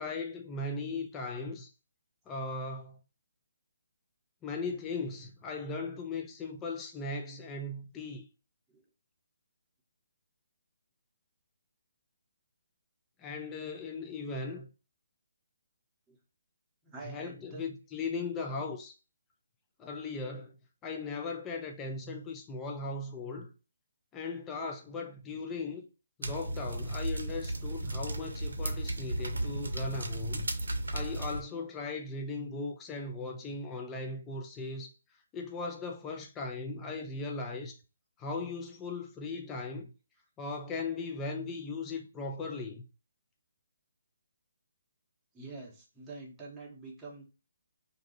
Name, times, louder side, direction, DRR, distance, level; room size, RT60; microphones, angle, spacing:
voice 1, 0.0-1.7 2.3-3.0 4.4-8.3 13.2-14.7 17.0-19.0 19.8-20.6 20.8-23.5 24.1-25.9 26.2-30.5 30.9-34.9 35.3-37.8 38.2-39.9 40.4-42.8, left 3 dB, 15° left, 0.4 m, -38 dB
voice 2, 16.8-17.7 45.3-47.2, right 3 dB, 10° right, 0.9 m, -46 dB
sound 1, 26.2-31.4, right 1 dB, 80° right, 0.6 m, -35 dB
2.6 x 2.3 x 3.8 m
hypercardioid pair, 150°, 0 cm